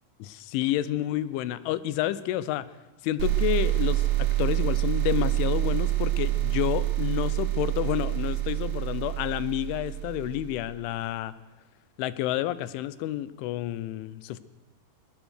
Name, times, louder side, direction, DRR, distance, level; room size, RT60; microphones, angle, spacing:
voice 1, 0.2-2.7 3.0-11.3 12.0-14.4, left 13 dB, 80° left, 16 dB, 3.2 m, -29 dB
sound 1, 3.2-10.7, right 16 dB, 65° right, 3.3 m, -27 dB
20.0 x 20.0 x 6.5 m, 1.2 s
omnidirectional pair, 5.5 m